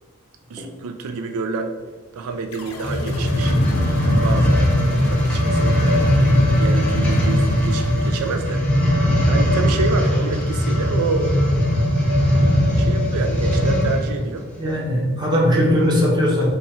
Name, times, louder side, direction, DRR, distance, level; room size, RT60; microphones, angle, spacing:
voice 1, 0.5-1.7 2.1-3.6 4.0-8.6 9.3-12.2 12.7-14.5, right 4 dB, 80° right, 6 dB, 0.4 m, -28 dB
sound 1, 2.5-9.0, left 1 dB, 75° left, 0.6 m, -35 dB
sound 2, 2.7-14.1 14.7-14.8, equal, 5° left, 0.7 m, -19 dB
voice 2, 14.6-16.5, equal, 20° right, -4 dB, 0.9 m, -19 dB
5.3 x 2.3 x 4.3 m, 1.3 s
head